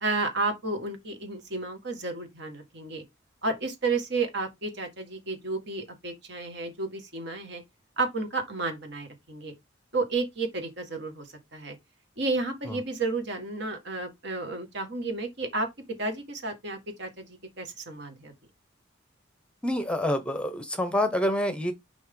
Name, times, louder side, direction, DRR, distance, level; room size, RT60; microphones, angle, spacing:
voice 1, 0.0-3.0 3.4-7.6 8.0-9.5 9.9-11.8 12.2-15.7 16.0-18.3, right 3 dB, 60° right, 1.9 m, -32 dB
voice 2, 19.6-21.7, left 1 dB, 5° left, 0.8 m, -27 dB
6.1 x 5.5 x 3.8 m
head